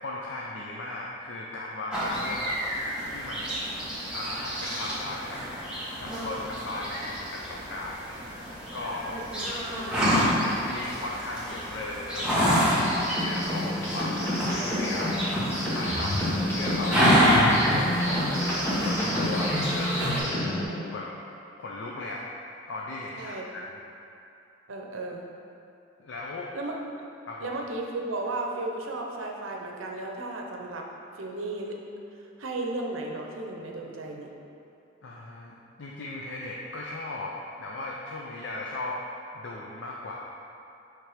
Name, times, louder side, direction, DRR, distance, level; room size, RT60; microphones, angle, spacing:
voice 1, 0.0-2.6 3.1-3.6 4.1-5.4 6.0-8.2 8.7-12.6 13.2-15.3 15.7-18.0 18.4-18.5 18.8-19.9 20.6-21.1 21.6-22.2 22.7-23.8 26.0-26.5 27.2-27.5 35.0-39.0 39.3-40.2, left 2 dB, 65° left, -3 dB, 0.5 m, -37 dB
sound 1, 1.9-20.2, equal, 5° right, 1.4 m, -28 dB
voice 2, 9.1-9.5 23.2-23.5 24.7-25.3 26.5-26.7 27.4-30.9 31.2-31.8 32.4-34.3, right 2 dB, 85° right, 0 dB, 0.8 m, -34 dB
sound 2, 12.3-20.6, left 1 dB, 15° left, 1.1 m, -29 dB
7.5 x 3.3 x 5.0 m, 2.7 s
head